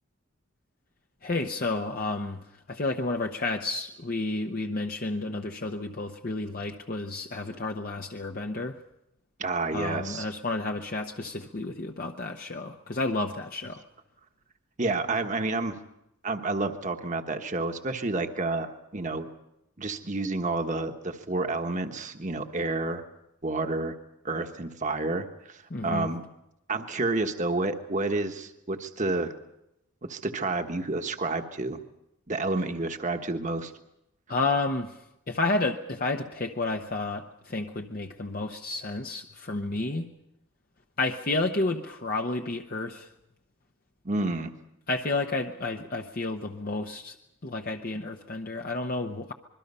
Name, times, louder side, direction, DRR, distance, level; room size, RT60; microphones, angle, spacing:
voice 1, 1.2-2.4 2.7-8.7 9.7-13.8 25.7-26.1 34.3-35.0 35.3-40.0 41.0-43.1 44.9-47.1 47.4-49.3, left 2 dB, 40° left, 3 dB, 0.9 m, -31 dB
voice 2, 9.4-10.3 14.8-15.8 16.2-19.3 19.8-23.0 23.4-23.9 24.2-26.2 26.7-29.3 30.0-31.8 32.3-33.7 44.0-44.5, right 2 dB, 35° right, 6 dB, 1.3 m, -29 dB
26.0 x 22.0 x 5.5 m, 0.87 s
head